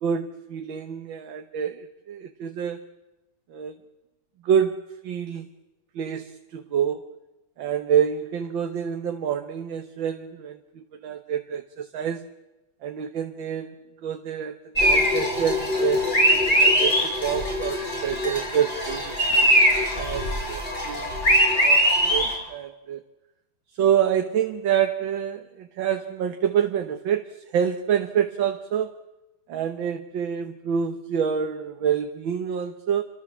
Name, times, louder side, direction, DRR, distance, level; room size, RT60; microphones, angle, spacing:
voice 1, 0.0-2.8 3.5-3.8 4.4-5.5 6.0-7.1 7.6-12.3 12.8-19.1 19.9-23.0 23.8-29.0 29.5-33.0, right 8 dB, 65° right, 6 dB, 1.9 m, -27 dB
sound 1, 14.8-22.3, equal, 25° left, 6.6 m, -21 dB
28.5 x 25.5 x 7.4 m, 1.0 s
omnidirectional pair, 2.3 m